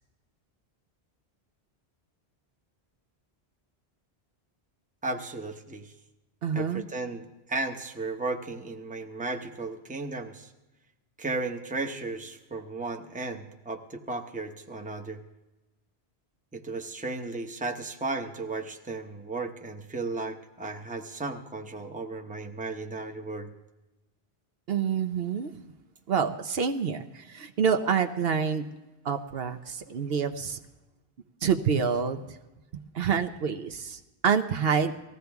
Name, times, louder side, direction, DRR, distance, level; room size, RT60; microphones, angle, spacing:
voice 1, 5.0-5.9 6.5-10.5 11.2-15.2 16.5-23.5, right 3 dB, 10° right, 4 dB, 0.8 m, -35 dB
voice 2, 6.4-6.8 24.7-25.5 26.1-28.6 29.0-30.6 31.4-32.4 32.9-34.9, right 6 dB, 65° right, 8 dB, 0.9 m, -27 dB
19.5 x 15.0 x 3.5 m, 1.0 s
omnidirectional pair, 1.1 m